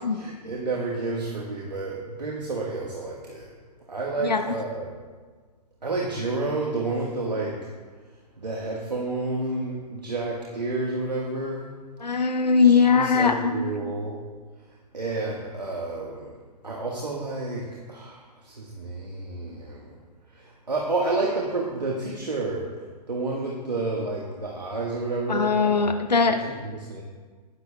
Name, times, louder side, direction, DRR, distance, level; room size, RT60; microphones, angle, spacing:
voice 1, 0.1-3.5 3.9-5.0 5.8-7.6 8.4-11.7 12.6-14.2 14.9-16.3 16.6-18.2 18.4-20.0 20.3-22.7 23.1-25.8 26.4-27.0, right 3 dB, 85° right, -2 dB, 1.4 m, -30 dB
voice 2, 4.2-4.5 12.0-13.6 25.3-26.4, left 5 dB, 85° left, 6 dB, 0.8 m, -20 dB
18.5 x 10.0 x 2.2 m, 1.5 s
figure-of-eight pair, 110°, 21 cm